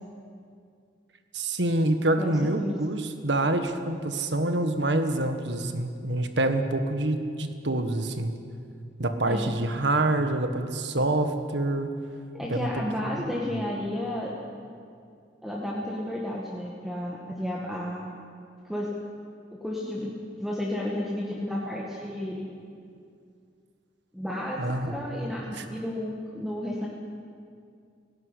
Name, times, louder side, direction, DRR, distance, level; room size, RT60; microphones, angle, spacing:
voice 1, 1.3-8.3 9.0-11.9 12.5-12.8 13.1-13.2 13.5-13.6 24.6-25.0 25.5-25.6, right 2 dB, 80° right, 7 dB, 1.6 m, -26 dB
voice 2, 2.2-2.8 9.3-9.5 12.3-14.3 15.4-18.1 18.7-18.9 19.5-22.5 24.1-26.9, left 1 dB, ahead, -5 dB, 1.9 m, -32 dB
17.5 x 16.5 x 9.9 m, 2.3 s
head